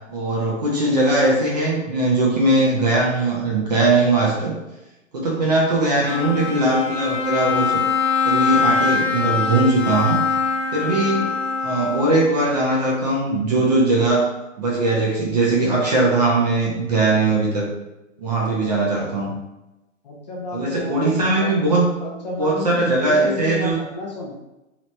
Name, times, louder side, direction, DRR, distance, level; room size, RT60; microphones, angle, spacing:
voice 1, 0.1-4.6 5.1-7.8 8.2-10.2 10.7-11.4 11.6-14.3 14.6-17.7 18.2-19.3 20.5-21.9 22.4-23.8, right 2 dB, 35° right, -3 dB, 0.4 m, -20 dB
Bowed string instrument, 6.0-12.4, left 5 dB, 50° left, 1.4 m, -23 dB
voice 2, 20.0-21.5 22.0-24.4, left 3 dB, 35° left, -3 dB, 0.5 m, -31 dB
2.9 x 2.1 x 2.9 m, 0.96 s
hypercardioid pair, 165°, 39 cm